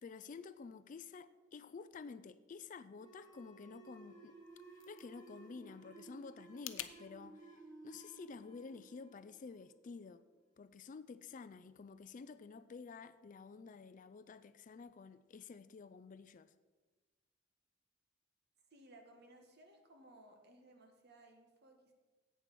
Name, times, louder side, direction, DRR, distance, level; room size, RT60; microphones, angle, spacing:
voice 1, 0.0-4.4 4.9-10.2 10.6-16.5, left 5 dB, 40° left, 0.4 m, -51 dB
sound 1, 2.9-10.1, right 3 dB, 20° left, 2.7 m, -57 dB
sound 2, 4.3-7.0, left 13 dB, 85° left, 0.6 m, -50 dB
voice 2, 18.7-21.9, right 1 dB, 55° right, 1.5 m, -61 dB
8.3 x 7.1 x 6.1 m
head